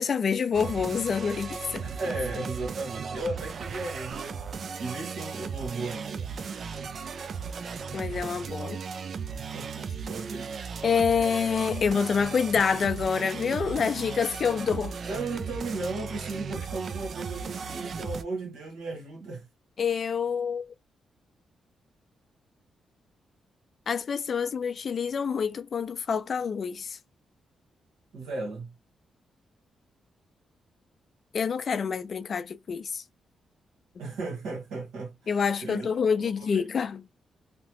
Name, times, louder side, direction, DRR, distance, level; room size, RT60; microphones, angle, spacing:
voice 1, 0.0-1.9 7.9-8.8 10.8-15.0 19.8-20.7 23.9-27.0 31.3-33.0 35.3-37.1, left 6 dB, 55° left, 0.4 m, -27 dB
sound 1, 0.5-18.2, right 5 dB, 60° right, 0.3 m, -36 dB
voice 2, 1.8-4.4 4.8-6.3 9.4-10.6 15.1-19.5 28.1-28.7 34.0-35.9 36.2-36.5, right 2 dB, 85° right, 1.2 m, -35 dB
2.8 x 2.0 x 2.9 m
cardioid pair, 70°, 0 cm